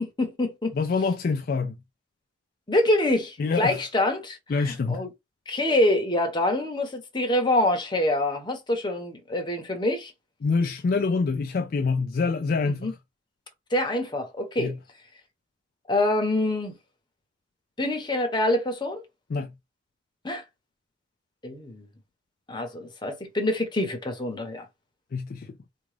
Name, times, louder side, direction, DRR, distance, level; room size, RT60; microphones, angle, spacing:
voice 1, 0.0-0.7 2.7-4.4 4.6-5.1 5.5-10.1 12.6-12.9 13.7-14.7 15.9-16.7 17.8-19.0 20.2-20.4 21.4-21.9 22.5-24.7, left 1 dB, 25° left, 0.9 m, -25 dB
voice 2, 0.7-1.8 3.4-3.8 4.5-5.0 10.4-12.9 14.6-14.8 19.3-19.5 25.1-25.6, left 4 dB, 50° left, 0.3 m, -26 dB
3.6 x 2.4 x 3.2 m
head